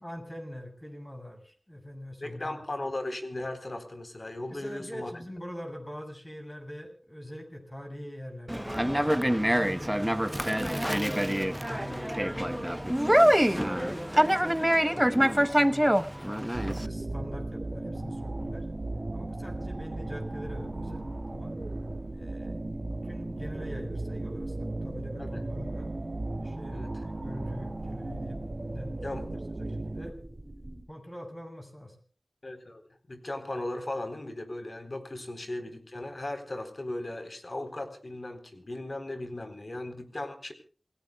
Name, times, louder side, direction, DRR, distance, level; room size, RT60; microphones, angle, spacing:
voice 1, 0.0-2.6 4.5-10.0 10.3-13.0 13.5-18.7 19.1-21.5 22.1-22.7 23.0-25.9 26.4-28.4 28.7-29.2 29.6-30.2 30.9-32.0, equal, 20° left, 4 dB, 7.0 m, -43 dB
voice 2, 2.2-5.2 25.2-25.4 26.7-27.0 29.0-29.3 32.4-40.5, left 1 dB, 55° left, 7 dB, 3.9 m, -37 dB
Conversation, 8.5-16.9, equal, 10° right, 0.9 m, -25 dB
sound 1, 16.5-30.1, right 2 dB, 55° right, 1.7 m, -36 dB
sound 2, 16.8-30.8, right 1 dB, 30° right, 3.7 m, -45 dB
27.5 x 19.0 x 2.3 m, 0.42 s
wide cardioid pair, 50°, 0 cm